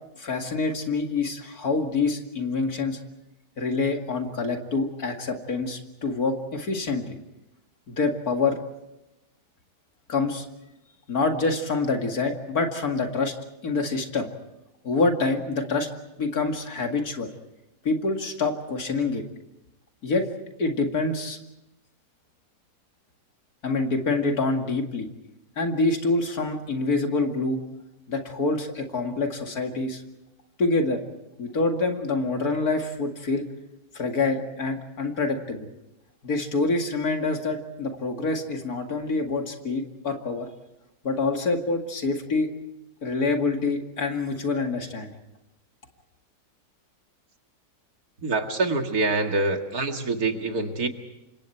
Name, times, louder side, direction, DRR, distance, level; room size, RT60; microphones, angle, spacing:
voice 1, 0.2-3.0 3.6-7.2 7.9-8.6 10.1-10.5 11.1-13.3 13.6-14.3 14.8-15.9 16.2-17.3 17.8-19.2 20.0-20.3 20.6-21.4 23.6-25.1 25.6-27.6 28.1-30.0 30.6-31.0 31.4-33.5 33.9-35.6 36.2-40.5 41.0-42.5 43.0-45.1, left 3 dB, 65° left, 4 dB, 2.7 m, -26 dB
voice 2, 48.2-50.9, right 3 dB, 65° right, 5 dB, 2.4 m, -25 dB
29.0 x 25.5 x 4.5 m, 0.92 s
omnidirectional pair, 1.7 m